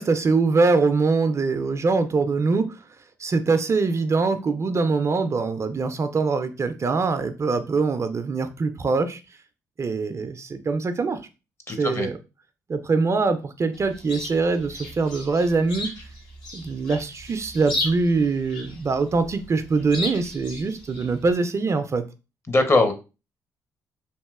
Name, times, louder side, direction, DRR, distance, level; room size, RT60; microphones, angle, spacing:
voice 1, 0.0-2.8 3.2-9.2 9.8-11.2 11.7-12.2 12.7-15.9 16.5-22.0, right 4 dB, 40° right, 9 dB, 0.4 m, -23 dB
voice 2, 11.7-12.1 22.5-22.9, left 2 dB, 30° left, 7 dB, 0.7 m, -20 dB
Chirp tweet, 13.7-21.3, left 2 dB, 75° left, 1.0 m, -36 dB
2.9 x 2.6 x 2.3 m, 0.30 s
hypercardioid pair, 50°, 8 cm